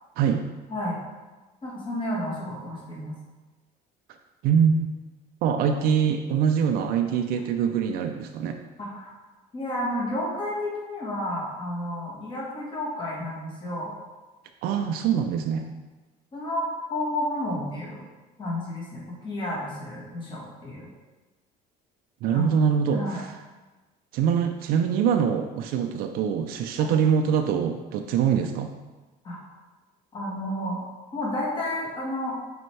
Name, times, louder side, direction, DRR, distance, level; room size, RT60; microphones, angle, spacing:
voice 1, 0.7-1.0 1.6-3.1 8.8-9.1 9.5-13.9 16.3-18.0 18.4-20.9 22.3-22.4 22.9-23.2 26.7-27.0 29.2-29.4 30.1-30.8 31.1-32.4, left 1 dB, 30° left, -4 dB, 1.5 m, -31 dB
voice 2, 4.4-4.9 5.4-8.6 14.6-15.6 22.2-23.3 24.1-28.7, right 7 dB, 60° right, 5 dB, 0.4 m, -24 dB
6.8 x 4.4 x 3.2 m, 1.2 s
cardioid pair, 160°, 17 cm